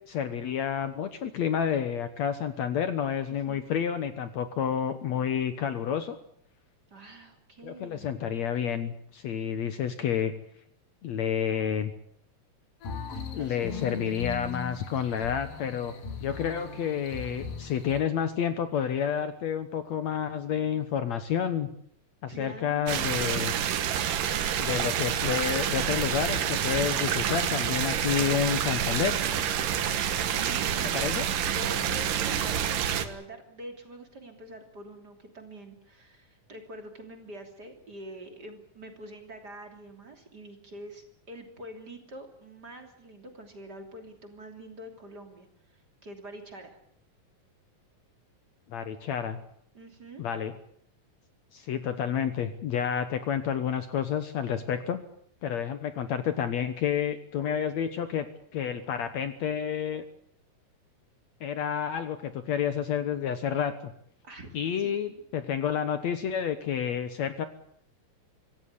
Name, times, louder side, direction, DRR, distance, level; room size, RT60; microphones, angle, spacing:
voice 1, 0.1-6.2 7.6-10.4 11.0-11.9 13.4-15.9 16.2-21.7 22.2-23.5 24.6-29.2 30.9-31.3 48.7-49.4 50.2-50.5 51.5-55.0 55.4-58.3 58.5-60.0 61.4-63.9 64.5-67.5, left 8 dB, 65° left, 10 dB, 2.2 m, -29 dB
voice 2, 3.3-3.6 6.9-8.1 13.3-14.0 16.2-16.4 22.3-23.3 30.2-31.2 31.5-46.8 49.7-50.3 64.2-64.5 64.8-65.2, right 1 dB, 30° right, 5 dB, 3.3 m, -45 dB
sound 1, 12.8-18.0, left 5 dB, 85° left, 4.6 m, -39 dB
sound 2, 22.9-33.1, right 9 dB, 75° right, 3.1 m, -28 dB
25.5 x 15.5 x 9.8 m, 0.66 s
omnidirectional pair, 3.9 m